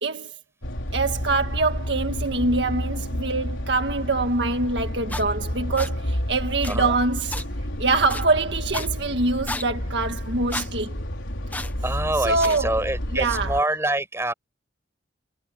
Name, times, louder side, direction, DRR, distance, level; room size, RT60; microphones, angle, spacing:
voice 1, 0.0-0.3 0.9-7.4 7.8-10.9 12.2-12.7 13.1-13.5, right 3 dB, 65° right, 1.9 m, -24 dB
sound 1, 0.6-13.6, equal, 85° left, 4.1 m, -30 dB
sound 2, 5.1-5.2 5.8-5.9 6.6-6.8 7.3-7.4 8.1-8.2 8.7-8.9 9.5-9.6 10.5-10.7 11.5-11.7 12.4-12.6, left 2 dB, 10° left, 1.2 m, -32 dB
voice 2, 6.7-7.0 11.8-14.3, right 1 dB, 15° right, 7.9 m, -26 dB
head